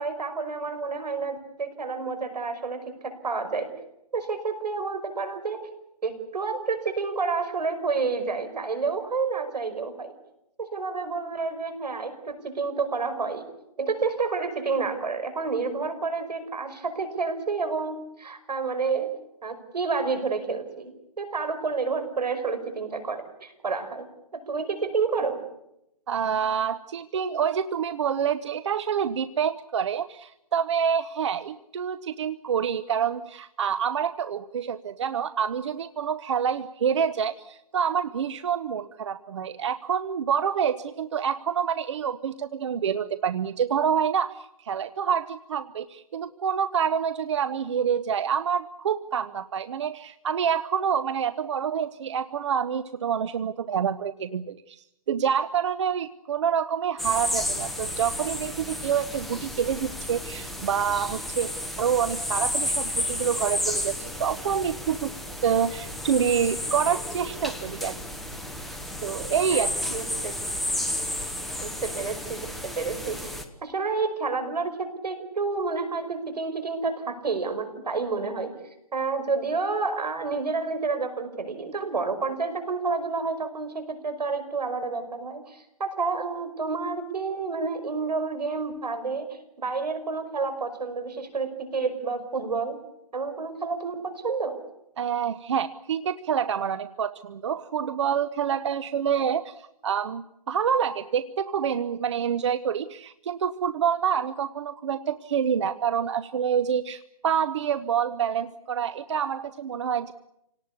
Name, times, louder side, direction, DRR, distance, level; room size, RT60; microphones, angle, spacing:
voice 1, 0.0-3.7 4.1-5.6 6.0-10.1 10.6-13.4 13.8-19.1 19.4-20.9 21.2-24.1 24.3-25.4 69.5-70.3 71.6-78.5 78.9-92.8 93.1-94.5, right 4 dB, 75° right, 9 dB, 5.6 m, -29 dB
voice 2, 26.1-61.5 61.8-65.1 65.4-68.0 69.0-69.8 95.0-110.1, right 8 dB, 45° right, 14 dB, 0.8 m, -27 dB
sound 1, 57.0-73.4, left 1 dB, ahead, 1.1 m, -32 dB
27.5 x 18.5 x 8.4 m, 0.83 s
hypercardioid pair, 155°, 21 cm